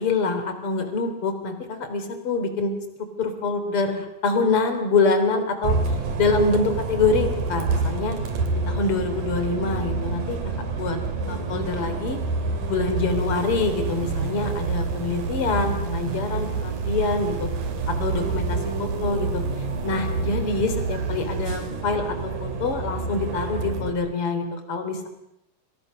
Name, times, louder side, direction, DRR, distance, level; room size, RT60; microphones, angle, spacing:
voice 1, 0.0-2.7 3.2-5.8 6.2-8.2 8.7-11.0 11.3-12.2 12.7-17.5 17.9-19.4 19.8-25.1, left 3 dB, 45° left, 7 dB, 4.2 m, -25 dB
Bus, 5.6-23.9, right 3 dB, 85° right, 4.4 m, -28 dB
sound 1, 13.1-21.5, right 5 dB, 55° right, 3.4 m, -31 dB
29.5 x 28.0 x 6.5 m, 0.80 s
omnidirectional pair, 3.6 m